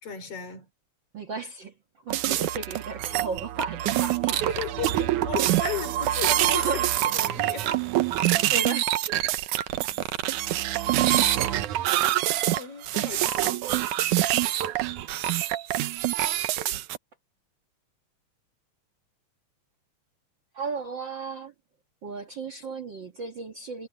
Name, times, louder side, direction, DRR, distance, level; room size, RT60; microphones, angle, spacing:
voice 1, 0.0-0.7 4.5-6.8 7.2-7.7 9.9-10.2 10.9-11.5 12.4-13.7, left 8 dB, 50° left, 4.4 m, -36 dB
voice 2, 1.1-4.5 6.5-6.9 8.2-8.9 20.5-21.5 22.0-23.9, right 4 dB, 50° right, 1.7 m, -35 dB
sound 1, 2.1-17.0, right 14 dB, 85° right, 2.4 m, -25 dB
omnidirectional pair, 3.5 m